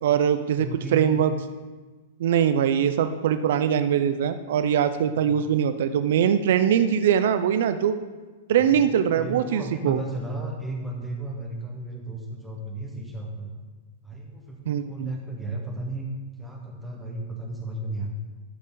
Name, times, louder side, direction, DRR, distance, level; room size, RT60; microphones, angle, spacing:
voice 1, 0.0-1.3 2.2-8.0 8.5-10.0 14.7-15.1, right 9 dB, 60° right, 10 dB, 0.5 m, -22 dB
voice 2, 0.6-1.2 8.6-13.5 14.0-16.1 16.4-18.1, right 2 dB, 5° right, -1 dB, 1.1 m, -34 dB
12.0 x 6.7 x 3.9 m, 1.3 s
supercardioid pair, 170°, 0 cm